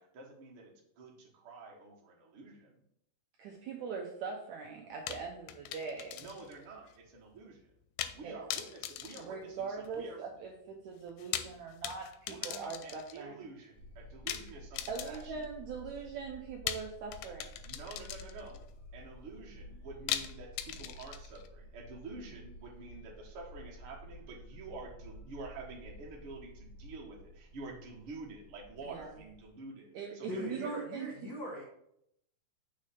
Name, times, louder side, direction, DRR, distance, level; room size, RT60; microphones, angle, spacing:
voice 1, 0.0-2.8 6.2-7.7 8.1-10.2 12.3-15.4 17.6-18.7 18.9-29.9 30.1-30.6, right 3 dB, 55° right, -2 dB, 1.5 m, -48 dB
voice 2, 3.4-6.2 8.2-8.4 9.3-13.5 14.9-17.5 28.8-29.1 29.9-31.1, right 5 dB, 85° right, 1 dB, 1.6 m, -41 dB
sound 1, 5.1-6.6 6.9-7.0 8.0-8.2 8.5-10.0 11.1-13.2 14.3-15.5 16.7-18.6 20.1-21.5, left 12 dB, 85° left, 2.3 m, -40 dB
sound 2, 13.7-29.5, equal, 45° left, 0.5 m, -52 dB
voice 3, 30.3-31.6, left 1 dB, 60° left, -6 dB, 1.0 m, -40 dB
6.4 x 3.2 x 5.7 m, 0.75 s
omnidirectional pair, 4.1 m